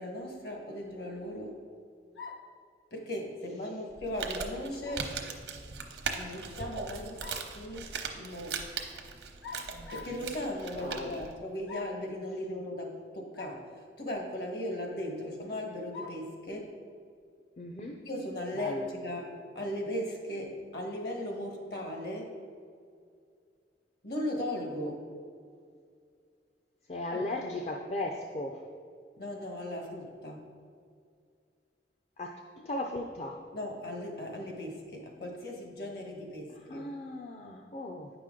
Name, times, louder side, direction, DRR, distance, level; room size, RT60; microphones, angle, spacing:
voice 1, 0.0-1.6 2.9-5.1 6.1-7.2 7.5-8.6 9.9-16.7 18.0-22.3 24.0-25.1 27.1-27.2 29.2-30.4 33.5-36.9, left 1 dB, 60° left, 2 dB, 1.4 m, -37 dB
sound 1, 2.2-2.6 4.8-5.1 6.9-7.5 9.4-10.2 11.7-12.1 13.3-13.6 14.1-14.2 15.9-16.3, left 4 dB, 80° left, 0.7 m, -45 dB
Crumpling crinkling, 3.9-11.3, right 5 dB, 85° right, 0.8 m, -40 dB
sound 2, 4.3-4.6 6.7-6.9 7.7-7.9, right 2 dB, 40° right, 0.4 m, -41 dB
voice 2, 10.8-11.2 17.6-18.0 18.5-18.9 26.9-28.6 32.2-33.4 36.7-38.1, left 1 dB, 35° left, 1 dB, 0.5 m, -37 dB
9.3 x 5.9 x 3.7 m, 2.2 s
head